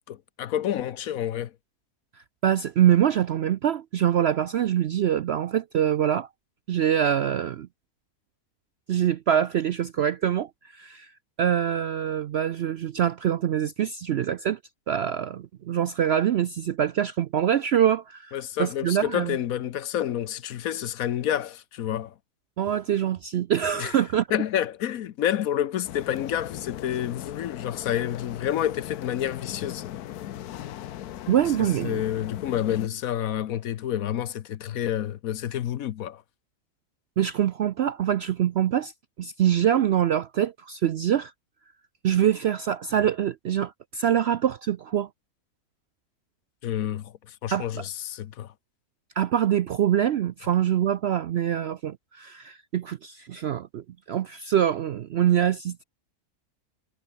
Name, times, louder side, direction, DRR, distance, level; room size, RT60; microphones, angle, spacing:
voice 1, 0.1-1.5 18.3-22.1 23.8-24.0 24.3-29.8 31.8-36.2 46.6-48.5, left 11 dB, 70° left, 1.2 m, -29 dB
voice 2, 2.1-6.3 6.7-7.7 8.9-11.1 11.4-14.6 14.9-19.4 22.6-24.3 31.3-32.0 37.2-38.9 39.2-41.3 42.0-45.1 47.5-47.8 49.2-55.8, right 10 dB, 65° right, 0.6 m, -24 dB
sound 1, 25.8-32.9, left 12 dB, 85° left, 1.3 m, -38 dB
omnidirectional pair, 1.6 m